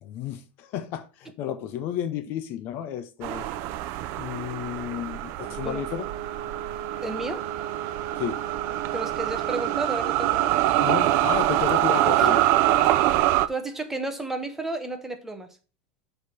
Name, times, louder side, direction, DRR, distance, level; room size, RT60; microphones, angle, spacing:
voice 1, 0.0-3.5 4.2-6.1 8.2-8.4 10.8-12.4, left 10 dB, 40° left, 0.5 m, -32 dB
sound 1, 3.2-13.5, right 14 dB, 45° right, 0.5 m, -25 dB
Brass instrument, 5.4-9.9, right 9 dB, 70° right, 1.2 m, -37 dB
voice 2, 7.0-7.5 8.9-10.6 12.1-12.5 13.5-15.5, right 2 dB, 5° right, 0.8 m, -32 dB
7.9 x 3.4 x 5.7 m
supercardioid pair, 165°, 6 cm